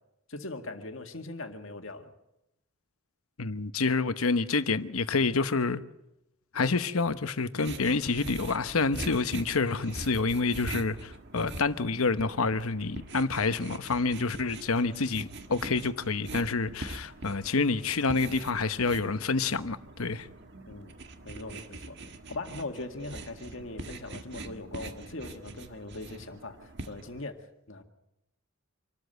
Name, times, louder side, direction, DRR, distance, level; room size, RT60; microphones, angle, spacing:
voice 1, 0.3-2.1 20.7-21.0 21.2-22.0 22.3-27.4 27.7-27.8, left 2 dB, 65° left, 2.0 m, -40 dB
voice 2, 3.4-5.8 6.5-20.3, left 4 dB, 85° left, 1.0 m, -28 dB
sound 1, 7.6-27.2, right 2 dB, 55° right, 1.7 m, -43 dB
26.0 x 13.5 x 8.0 m
head